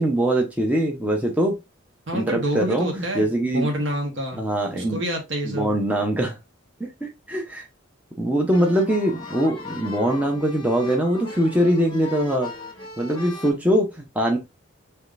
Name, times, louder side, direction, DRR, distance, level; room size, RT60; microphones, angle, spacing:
voice 1, 0.0-1.6 2.1-3.7 4.3-5.0 5.4-6.4 6.8-7.7 8.2-12.5 13.0-14.4, right 1 dB, 5° right, 0 dB, 0.7 m, -22 dB
voice 2, 2.1-4.5 4.7-5.8, right 1 dB, 65° right, 2 dB, 1.2 m, -28 dB
sound 1, 8.5-13.5, left 3 dB, 20° left, 0.9 m, -38 dB
5.0 x 3.2 x 2.5 m, 0.23 s
head